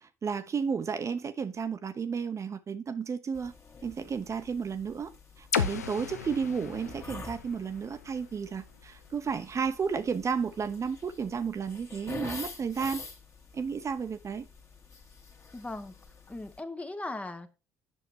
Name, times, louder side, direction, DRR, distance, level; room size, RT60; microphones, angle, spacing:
voice 1, 0.0-3.5 3.8-5.1 5.4-13.0 13.5-14.5, right 6 dB, 40° right, 0.9 m, -32 dB
sound 1, 3.3-16.6, left 4 dB, 35° left, 1.9 m, -47 dB
sound 2, 5.5-9.4, left 7 dB, 90° left, 0.5 m, -35 dB
voice 2, 15.5-15.9 16.3-17.6, left 2 dB, 15° left, 1.0 m, -38 dB
8.2 x 5.9 x 4.6 m
hypercardioid pair, 50°, 8 cm